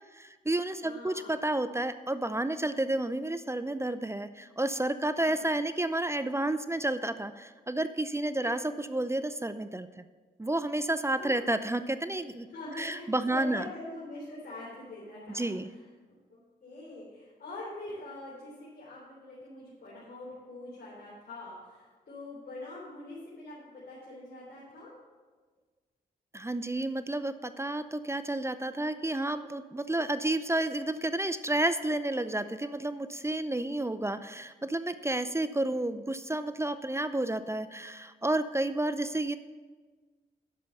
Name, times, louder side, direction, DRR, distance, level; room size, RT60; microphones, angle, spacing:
voice 1, 0.1-10.0 10.4-12.5 12.8-13.7 15.3-15.7 26.3-39.4, right 1 dB, 15° right, 12 dB, 0.6 m, -31 dB
voice 2, 0.8-1.4 5.2-5.5 8.4-8.5 11.2-11.4 12.5-15.5 16.1-24.9, left 2 dB, 60° left, -6 dB, 3.7 m, -44 dB
10.5 x 6.6 x 6.6 m, 1.4 s
supercardioid pair, 50°, 17 cm